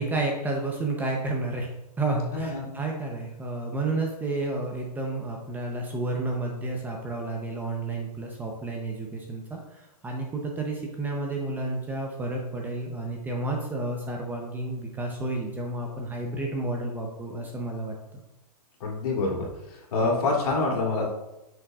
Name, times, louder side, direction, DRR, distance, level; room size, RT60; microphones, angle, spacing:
voice 1, 0.0-1.7 2.0-17.9, right 2 dB, 10° right, 0 dB, 0.6 m, -31 dB
voice 2, 2.3-2.7 18.8-21.1, left 3 dB, 65° left, -2 dB, 2.3 m, -26 dB
7.8 x 6.1 x 2.3 m, 0.92 s
hypercardioid pair, 150°, 21 cm